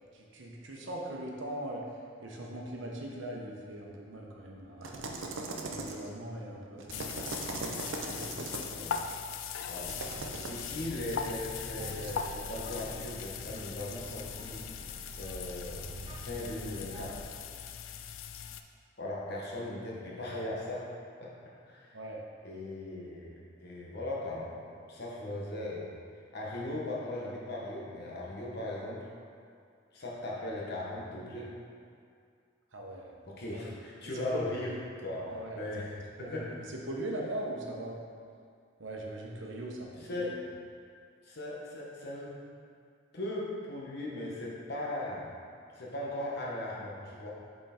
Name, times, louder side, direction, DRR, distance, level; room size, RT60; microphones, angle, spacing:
voice 1, 0.1-1.8 2.2-5.1 5.6-7.4 8.0-8.7 21.9-22.2 32.7-33.1 33.5-33.6 34.1-34.4 35.1-35.6 36.2-38.0 38.8-40.3, right 1 dB, 75° right, -1 dB, 0.9 m, -40 dB
sound 1, 4.8-6.2 6.8-8.8 9.8-10.6 11.9-12.1, right 3 dB, 90° right, 0.6 m, -39 dB
sound 2, 6.9-18.6, left 7 dB, 90° left, 0.4 m, -40 dB
sound 3, 9.8-17.2, right 2 dB, 30° right, 0.4 m, -46 dB
voice 2, 10.5-17.2 19.0-20.9 21.2-21.3 21.7-21.9 22.4-25.9 26.3-29.0 29.9-31.6 33.3-34.7 35.0-35.2 35.5-36.6 40.0-40.3 41.2-42.4 43.1-45.3 45.7-47.3, left 1 dB, 60° left, -4 dB, 1.1 m, -38 dB
5.7 x 4.5 x 4.3 m, 2.3 s
head